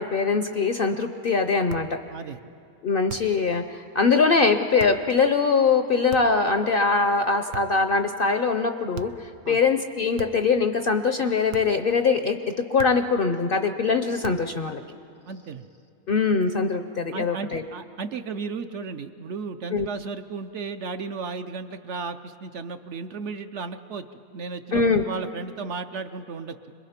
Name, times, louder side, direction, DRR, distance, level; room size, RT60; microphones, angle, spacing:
voice 1, 0.0-1.9 2.8-14.8 16.1-17.6 19.7-19.9 24.7-25.0, left 4 dB, 55° left, 7 dB, 0.7 m, -22 dB
sound 1, 1.7-2.0 3.1-3.5 4.8-5.1 6.1-6.5 7.5-7.9 8.9-9.3 10.2-10.6 11.5-11.9 12.8-13.2 14.2-14.6, right 8 dB, 90° right, 1.2 m, -40 dB
voice 2, 15.3-15.7 17.1-24.1 24.3-26.7, right 4 dB, 60° right, 8 dB, 0.9 m, -34 dB
26.0 x 21.5 x 5.8 m, 2.5 s
omnidirectional pair, 1.5 m